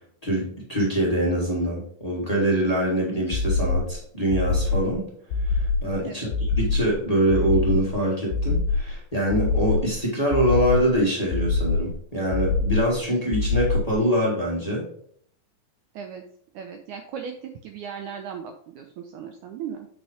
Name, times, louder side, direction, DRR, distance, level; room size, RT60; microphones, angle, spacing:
voice 1, 0.2-14.9, right 1 dB, 15° left, -4 dB, 1.8 m, -24 dB
sound 1, 3.3-4.0 4.3-5.0 5.3-5.9 6.3-7.0 7.3-7.9 8.3-9.0 9.3-9.9 10.3-11.0 11.3-12.0 12.3-13.0 13.3-14.0, left 3 dB, 80° left, 2.0 m, -24 dB
voice 2, 16.5-19.9, right 7 dB, 80° right, 4 dB, 1.9 m, -37 dB
8.3 x 4.5 x 5.0 m, 0.63 s
omnidirectional pair, 4.1 m